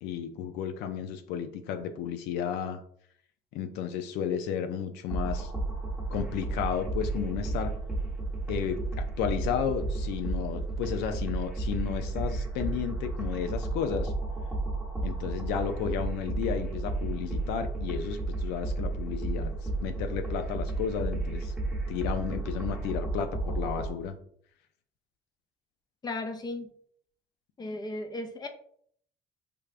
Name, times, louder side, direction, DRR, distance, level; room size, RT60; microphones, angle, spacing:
voice 1, 0.0-2.8 3.5-5.5 6.1-7.7 8.5-14.1 15.0-19.5 19.8-21.5 21.9-24.2, left 8 dB, 90° left, 8 dB, 0.4 m, -33 dB
sound 1, 5.1-23.9, right 2 dB, 5° right, 0.9 m, -32 dB
voice 2, 26.0-26.7 27.6-28.5, left 2 dB, 25° left, 6 dB, 0.5 m, -35 dB
3.4 x 3.3 x 2.4 m, 0.64 s
cardioid pair, 110°, 17 cm